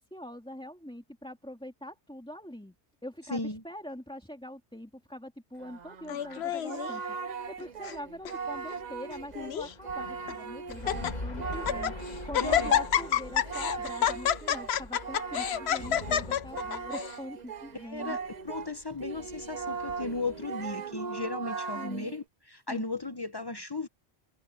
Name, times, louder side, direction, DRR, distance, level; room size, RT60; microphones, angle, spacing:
voice 1, 0.0-2.7 3.0-18.2 21.7-22.1 22.7-22.8, equal, 5° left, 2.5 m, -43 dB
voice 2, 3.3-3.6 12.4-12.7 17.7-23.9, left 3 dB, 25° left, 0.8 m, -36 dB
Singing, 5.6-18.7 19.0-22.2, right 5 dB, 45° right, 0.7 m, -39 dB
Laughter, 6.1-6.9 7.6-8.0 8.2-8.3 9.1-9.7 10.3-10.4 10.7-11.1 11.5-11.9 12.3-17.1, left 9 dB, 70° left, 1.0 m, -28 dB
sound 1, 7.3-20.9, left 2 dB, 40° left, 2.1 m, -44 dB
omnidirectional pair, 1.1 m